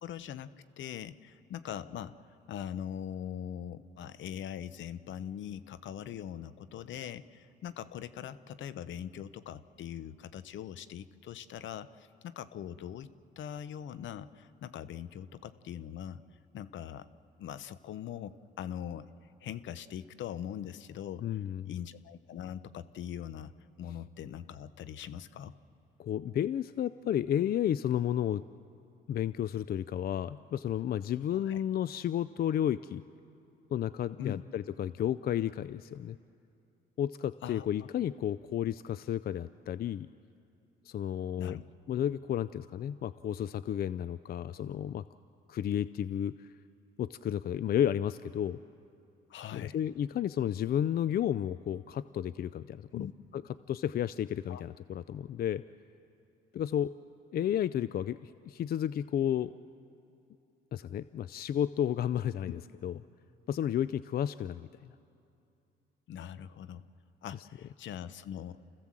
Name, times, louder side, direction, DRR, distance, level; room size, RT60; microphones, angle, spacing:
voice 1, 0.0-2.1 2.5-13.1 13.4-16.2 16.5-17.1 17.4-19.1 19.4-21.3 21.6-23.5 23.8-25.5 31.4-31.6 34.2-34.4 37.4-37.9 41.4-41.6 49.3-49.8 52.9-53.1 54.5-54.6 66.1-66.8 67.2-68.7, left 9 dB, 70° left, 14 dB, 0.8 m, -41 dB
voice 2, 21.2-21.8 26.0-28.4 29.1-33.0 33.7-36.2 37.0-40.1 40.8-41.6 41.9-45.0 45.5-46.5 47.0-48.6 49.5-53.1 53.7-55.6 56.5-56.9 57.3-59.5 60.7-62.9 63.5-64.9, left 10 dB, 50° left, 15 dB, 0.4 m, -32 dB
29.0 x 15.5 x 7.5 m, 2.7 s
cardioid pair, 90°, 20 cm